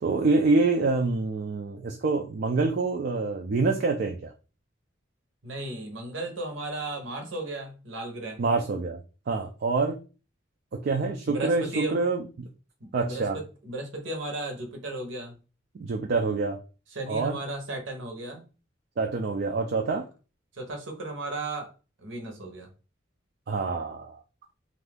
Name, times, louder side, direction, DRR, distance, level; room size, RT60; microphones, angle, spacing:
voice 1, 0.0-4.3 8.4-9.0 9.3-10.0 10.7-12.5 12.9-13.4 15.7-16.6 17.1-17.4 19.0-20.1 23.5-24.2, right 3 dB, 50° right, 3 dB, 0.4 m, -26 dB
voice 2, 5.4-8.4 11.3-12.0 12.8-15.3 16.9-18.5 20.6-21.7 22.0-22.7, right 2 dB, 80° right, 3 dB, 0.9 m, -35 dB
2.6 x 2.5 x 3.4 m, 0.34 s
head